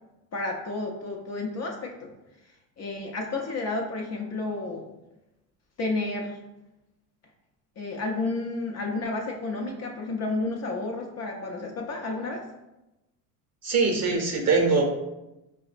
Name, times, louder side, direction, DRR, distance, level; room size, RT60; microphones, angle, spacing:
voice 1, 0.3-2.1 2.8-4.9 5.8-6.4 7.8-12.5, left 2 dB, 35° left, 1 dB, 0.5 m, -31 dB
voice 2, 13.6-14.8, right 4 dB, 35° right, 1 dB, 0.7 m, -22 dB
4.7 x 2.1 x 2.5 m, 0.97 s
supercardioid pair, 85°, 48 cm